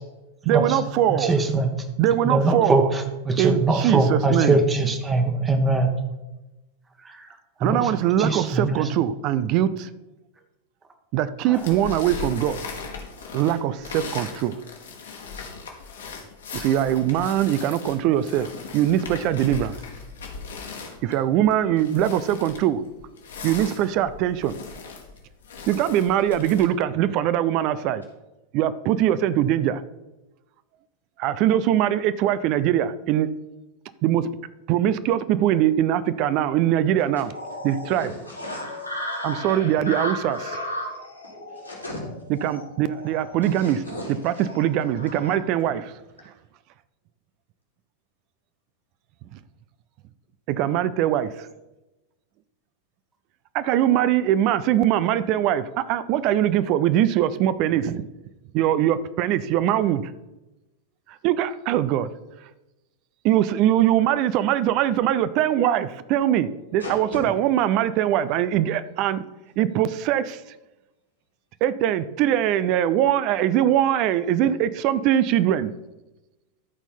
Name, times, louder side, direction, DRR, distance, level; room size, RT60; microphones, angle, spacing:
voice 1, 0.5-1.3 2.0-2.8 3.4-4.6 7.6-9.9 11.1-12.6 13.3-14.6 16.5-18.5 18.7-19.8 21.0-22.8 23.4-24.5 25.7-28.0 28.5-29.8 31.2-33.3 34.0-34.2 34.7-37.3 37.6-38.1 39.2-40.6 42.4-43.8 44.2-45.9 50.5-51.5 53.5-58.0 58.5-60.0 61.2-62.1 63.2-69.2 69.6-70.4 71.6-75.7, right 11 dB, 40° right, 15 dB, 0.5 m, -22 dB
voice 2, 1.1-1.7 2.2-5.9 7.0-7.3 7.6-7.9 8.2-8.8 11.5-11.6, right 3 dB, 15° right, 5 dB, 1.4 m, -22 dB
sound 1, 11.5-26.6, left 5 dB, 65° left, 1.8 m, -38 dB
sound 2, 37.3-45.4, left 1 dB, 90° right, 1.7 m, -35 dB
voice 3, 37.9-38.9 41.5-42.0 43.4-44.4 66.8-67.2, left 1 dB, 85° left, -4 dB, 3.3 m, -37 dB
13.0 x 4.5 x 5.5 m, 1.0 s
figure-of-eight pair, 90°, 0 cm